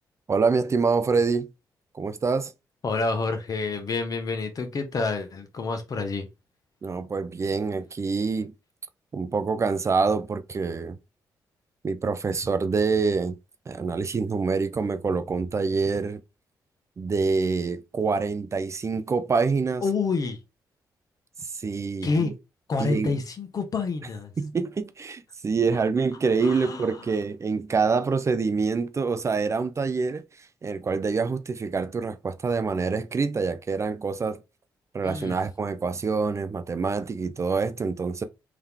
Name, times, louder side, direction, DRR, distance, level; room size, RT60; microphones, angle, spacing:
voice 1, 0.3-1.5 1.9-2.5 6.8-8.5 9.1-11.0 11.8-13.4 13.7-16.2 17.0-19.8 21.5-22.3 22.8-23.1 24.4-30.2 30.6-34.4 34.9-38.2, right 4 dB, 40° right, 0.5 m, -26 dB
voice 2, 2.8-6.3 19.8-20.4 22.0-22.3 22.7-24.3 26.4-27.1 35.0-35.4, left 4 dB, 50° left, 1.0 m, -28 dB
3.6 x 3.0 x 3.5 m
cardioid pair, 65°, 8 cm